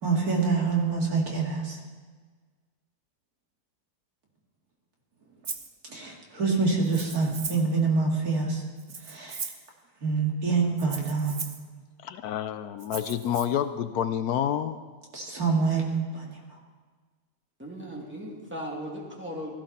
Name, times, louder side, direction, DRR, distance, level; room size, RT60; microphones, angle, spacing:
voice 1, 0.0-1.8 5.9-8.6 9.0-9.4 10.0-11.4 15.1-15.9 16.1-16.4, right 4 dB, 65° right, -1 dB, 2.7 m, -26 dB
Rattle (instrument), 5.4-5.7 6.8-7.7 8.8-9.7 10.8-11.6 12.8-13.4, right 5 dB, 40° right, 0.7 m, -38 dB
voice 2, 12.0-14.8, left 9 dB, 75° left, 11 dB, 1.1 m, -28 dB
voice 3, 17.6-19.5, equal, 5° right, -3 dB, 2.5 m, -37 dB
16.0 x 14.5 x 4.2 m, 1.5 s
omnidirectional pair, 1.7 m